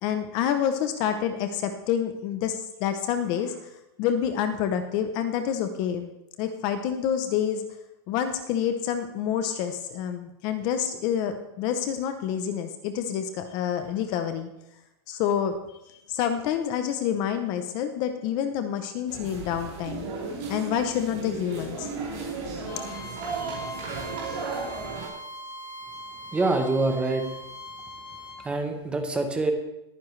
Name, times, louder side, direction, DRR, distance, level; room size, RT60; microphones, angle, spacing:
voice 1, 0.0-3.7 4.0-6.1 6.4-7.6 8.1-14.5 15.1-20.1 20.5-21.9, left 9 dB, 30° left, 8 dB, 0.7 m, -28 dB
sound 1, 19.1-25.1, right 4 dB, 35° right, 5.0 m, -35 dB
Bowed string instrument, 22.7-28.4, equal, 60° left, 4.2 m, -41 dB
voice 2, 26.3-27.2 28.4-29.5, right 2 dB, 5° right, 5 dB, 0.9 m, -25 dB
21.0 x 9.7 x 3.2 m, 0.90 s
supercardioid pair, 180°, 14 cm